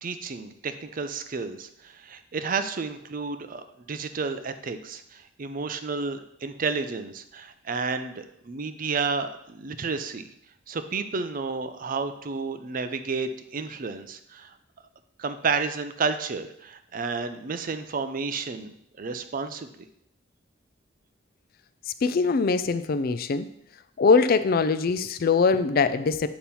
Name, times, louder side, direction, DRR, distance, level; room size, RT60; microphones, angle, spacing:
voice 1, 0.0-10.3 10.7-14.5 15.2-18.7 19.0-19.8, right 4 dB, 45° right, 10 dB, 0.5 m, -31 dB
voice 2, 22.0-23.5 24.0-26.3, left 4 dB, 50° left, 11 dB, 0.4 m, -22 dB
8.5 x 3.0 x 5.5 m, 0.75 s
head